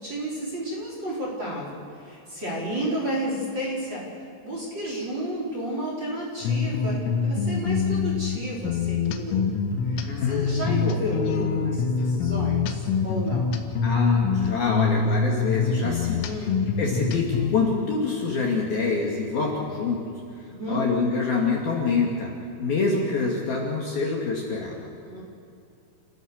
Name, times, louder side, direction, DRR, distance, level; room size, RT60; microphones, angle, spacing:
voice 1, 0.0-4.2 4.4-9.5 9.9-13.5 16.2-16.5 20.5-20.8 25.0-25.2, equal, 20° right, -4 dB, 4.6 m, -31 dB
sound 1, 6.4-17.5, left 5 dB, 75° left, 3.9 m, -25 dB
voice 2, 10.0-10.5 13.8-16.5 16.8-20.0 20.7-22.3 22.6-24.8, left 4 dB, 55° left, -2 dB, 3.6 m, -26 dB
30.0 x 16.0 x 6.6 m, 2.5 s
omnidirectional pair, 6.0 m